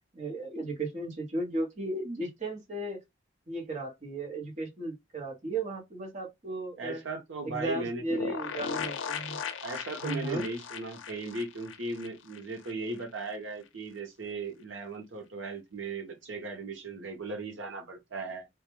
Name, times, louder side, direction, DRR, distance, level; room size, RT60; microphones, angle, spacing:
voice 1, 0.1-3.0 3.5-7.0 7.4-9.4 10.0-10.4, right 2 dB, 40° right, 0.9 m, -35 dB
voice 2, 6.8-8.4 9.6-18.5, right 3 dB, 80° right, 0.7 m, -37 dB
sound 1, 8.1-12.7 13.0-13.1 13.3-13.4, left 7 dB, 90° left, 0.4 m, -38 dB
2.2 x 2.1 x 3.0 m
head